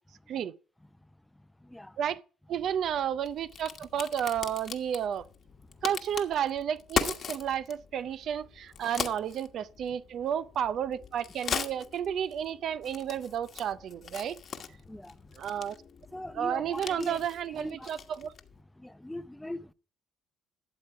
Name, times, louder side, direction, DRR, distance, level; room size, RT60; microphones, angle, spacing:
Crack, 2.5-18.6, left 7 dB, 55° left, 1.3 m, -40 dB
voice 1, 2.5-5.2 5.8-14.4 15.4-15.8 16.3-18.3, right 9 dB, 65° right, 0.5 m, -32 dB
voice 2, 16.1-17.2 17.6-17.9 18.8-19.7, left 1 dB, 10° left, 0.6 m, -39 dB
12.5 x 7.5 x 4.7 m
supercardioid pair, 75°, 0 cm